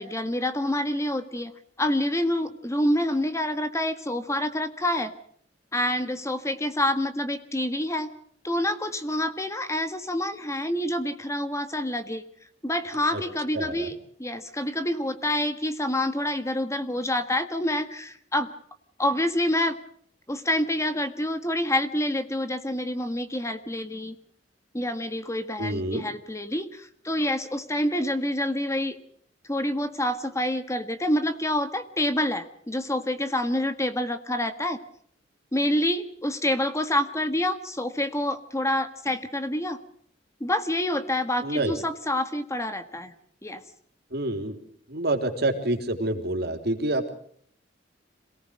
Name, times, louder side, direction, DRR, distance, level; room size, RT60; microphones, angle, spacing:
voice 1, 0.0-1.5 1.8-5.1 5.7-8.1 8.4-12.2 12.6-13.9 14.2-18.5 19.0-19.8 20.3-24.1 24.7-29.0 29.5-34.8 35.5-39.8 40.4-43.1 43.4-43.6, left 1 dB, 15° left, 9 dB, 1.6 m, -27 dB
voice 2, 13.5-13.9 25.6-26.1 41.4-41.7 44.1-44.6 44.9-47.1, right 1 dB, 60° right, 6 dB, 3.7 m, -27 dB
27.0 x 18.5 x 6.5 m, 0.62 s
head